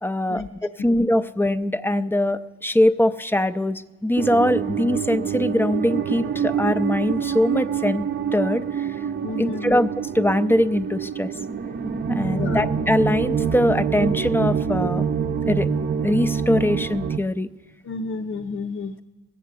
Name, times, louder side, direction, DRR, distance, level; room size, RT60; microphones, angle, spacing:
voice 1, 0.0-8.0 8.3-9.0 9.4-9.9 10.1-11.3 12.1-15.1 15.5-15.7 16.0-17.5, left 1 dB, 5° left, 12 dB, 0.5 m, -22 dB
sound 1, 4.2-17.2, right 7 dB, 35° right, 0.6 m, -26 dB
voice 2, 9.2-9.7 12.3-12.7 17.8-19.0, left 4 dB, 50° left, 2 dB, 0.7 m, -31 dB
19.0 x 7.6 x 8.2 m, 1.1 s
cardioid pair, 90°, 30 cm